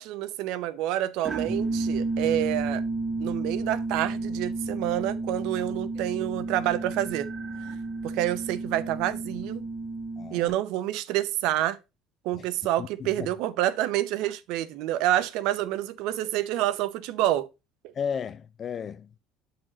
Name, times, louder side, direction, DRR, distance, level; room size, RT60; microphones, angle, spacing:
voice 1, 0.0-2.8 3.2-7.3 8.0-9.6 10.3-11.8 12.2-17.5, right 13 dB, 70° right, 0.6 m, -28 dB
sound 1, 1.3-10.5, right 3 dB, 15° right, 1.0 m, -31 dB
voice 2, 10.2-10.5 12.3-12.5 12.8-13.3 17.9-19.1, left 7 dB, 35° left, 0.4 m, -34 dB
7.7 x 4.1 x 3.8 m
cardioid pair, 130°, 0 cm